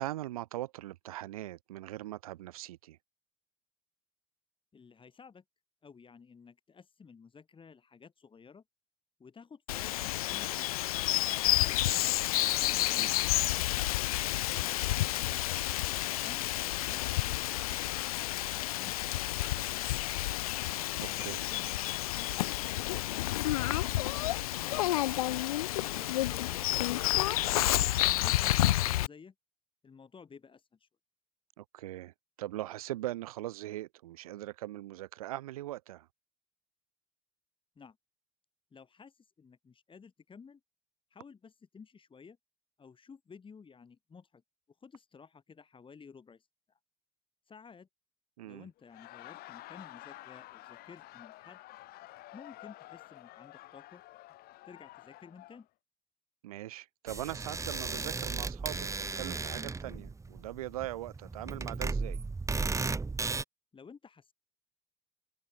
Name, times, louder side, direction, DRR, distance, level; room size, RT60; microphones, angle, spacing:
voice 1, 0.0-3.0 13.0-13.1 21.0-21.4 31.6-32.1 32.4-36.1 48.4-48.7 56.4-62.2, right 15 dB, 70° right, 0.7 m, -40 dB
voice 2, 4.7-5.4 5.8-8.6 9.2-10.7 11.5-12.1 14.5-15.5 15.9-17.8 18.5-20.1 21.0-21.7 25.8-27.2 27.4-29.3 29.8-30.9 37.8-38.0 38.7-40.6 41.1-42.4 42.8-44.4 44.8-46.5 47.5-47.9 48.4-51.6 52.3-54.0 54.7-55.7 63.7-64.3, left 5 dB, 25° left, 5.3 m, -54 dB
Bird vocalization bird call bird song, 9.7-29.1, left 15 dB, 70° left, 0.6 m, -30 dB
Laughter, 48.8-55.6, left 17 dB, 55° left, 7.1 m, -50 dB
sound 1, 57.1-63.4, right 4 dB, 15° right, 1.4 m, -35 dB
figure-of-eight pair, 60°, 19 cm